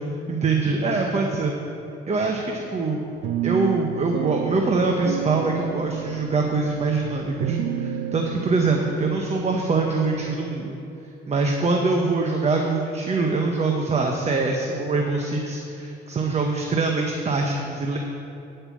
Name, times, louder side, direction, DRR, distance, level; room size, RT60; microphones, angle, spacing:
voice 1, 0.3-1.5 2.1-3.0 3.4-10.8 11.3-18.0, right 3 dB, 35° right, 1 dB, 0.9 m, -24 dB
sound 1, 3.2-10.3, right 9 dB, 80° right, 0.5 m, -31 dB
9.8 x 5.5 x 7.2 m, 2.7 s
cardioid pair, 90°, 20 cm